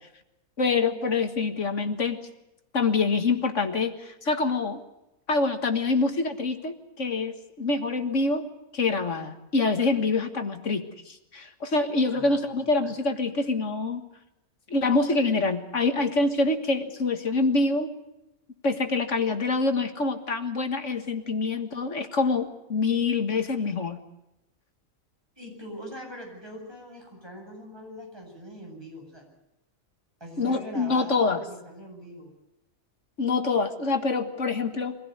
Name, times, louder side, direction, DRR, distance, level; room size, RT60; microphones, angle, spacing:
voice 1, 0.6-2.2 2.7-4.8 5.3-8.5 8.7-14.0 14.7-17.9 18.6-24.0 30.4-31.4 33.2-35.0, left 3 dB, 60° left, 7 dB, 2.0 m, -26 dB
voice 2, 12.1-12.9 25.4-29.3 30.2-32.3, equal, 15° right, 0 dB, 8.1 m, -42 dB
24.5 x 16.0 x 9.5 m, 0.90 s
omnidirectional pair, 1.5 m